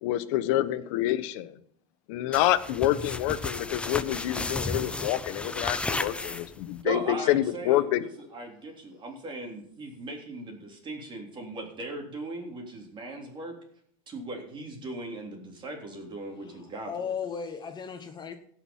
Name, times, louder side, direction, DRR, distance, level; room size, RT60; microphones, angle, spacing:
voice 1, 0.0-1.5 2.1-8.0, left 14 dB, 65° left, 1.0 m, -27 dB
sound 1, 2.3-6.8, left 2 dB, 5° left, 0.5 m, -33 dB
voice 2, 6.8-13.5 14.1-17.1, right 2 dB, 25° right, 3.4 m, -38 dB
voice 3, 16.4-18.3, left 7 dB, 25° left, 1.1 m, -36 dB
17.0 x 6.0 x 5.6 m
supercardioid pair, 135°, 18 cm